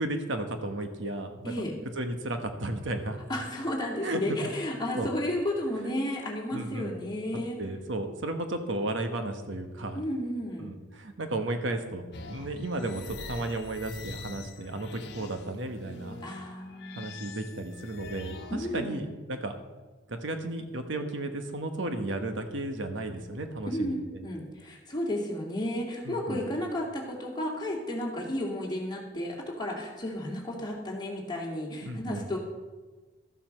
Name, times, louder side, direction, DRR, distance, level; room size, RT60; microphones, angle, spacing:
voice 1, 0.0-1.5 2.0-3.2 4.0-4.4 4.9-5.1 6.5-7.0 7.6-10.0 10.6-16.2 17.0-19.5 20.1-24.2 26.0-26.4 31.8-32.3, right 2 dB, 65° right, 7 dB, 1.2 m, -34 dB
voice 2, 3.3-7.6 9.9-10.7 16.2-16.9 18.5-19.1 23.7-24.0 24.2-32.4, left 1 dB, 20° left, -2 dB, 2.6 m, -33 dB
sound 1, 12.1-18.8, left 3 dB, 55° left, 1.3 m, -44 dB
13.5 x 7.5 x 6.5 m, 1.3 s
head